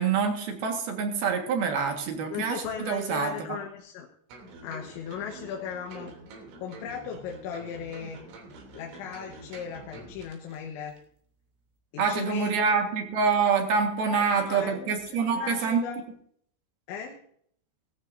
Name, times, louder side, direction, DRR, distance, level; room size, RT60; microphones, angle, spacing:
voice 1, 0.0-3.3 12.0-15.8, right 5 dB, 65° right, 3 dB, 3.3 m, -26 dB
voice 2, 2.3-4.1 4.6-6.2 6.6-8.2 8.7-10.9 11.9-12.8 14.1-16.0 16.9-17.2, left 7 dB, 85° left, 2 dB, 3.6 m, -37 dB
sound 1, 4.3-10.6 10.9-11.0, right 2 dB, 90° right, 5.5 m, -46 dB
18.5 x 15.0 x 2.7 m, 0.64 s
omnidirectional pair, 5.2 m